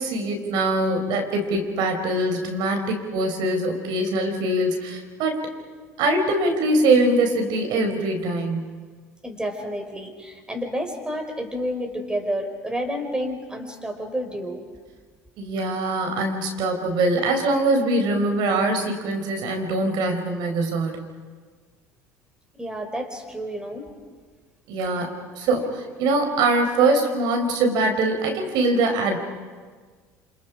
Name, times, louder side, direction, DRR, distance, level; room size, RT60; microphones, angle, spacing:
voice 1, 0.0-5.5 6.0-8.7 15.4-20.9 24.7-29.2, right 2 dB, 65° right, 5 dB, 4.6 m, -23 dB
voice 2, 9.2-14.6 22.6-23.9, equal, 10° right, 4 dB, 5.3 m, -30 dB
28.5 x 26.5 x 5.1 m, 1.5 s
hypercardioid pair, 70°, 8 cm